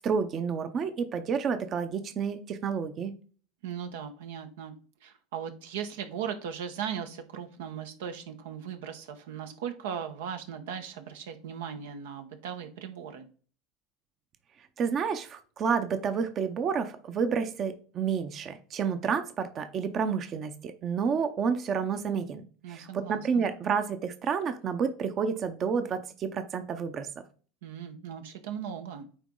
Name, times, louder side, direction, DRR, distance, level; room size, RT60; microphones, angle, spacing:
voice 1, 0.0-3.1 14.8-27.1, right 6 dB, 40° right, 9 dB, 0.7 m, -30 dB
voice 2, 3.6-4.7 5.0-13.3 22.6-23.5 27.6-29.1, right 8 dB, 85° right, 7 dB, 0.9 m, -38 dB
9.0 x 3.1 x 3.8 m, 0.41 s
supercardioid pair, 105°, 0 cm